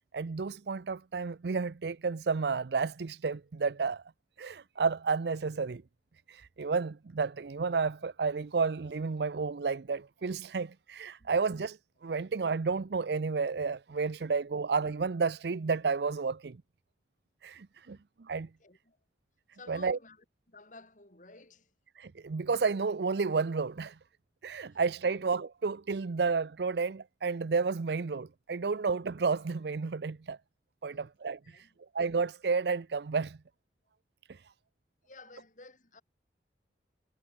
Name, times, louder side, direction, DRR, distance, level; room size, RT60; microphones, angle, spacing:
voice 1, 0.1-4.0 4.4-5.8 6.3-16.6 17.4-18.5 19.7-20.0 22.0-24.0 24.4-30.4 30.8-31.7 31.9-33.4 34.3-34.5, right 4 dB, 65° right, 0.5 m, -31 dB
voice 2, 18.6-19.0 19.5-21.7 24.7-24.8 25.1-25.2 30.9-31.1 31.4-31.8 35.0-36.0, left 3 dB, 45° left, 4.0 m, -54 dB
head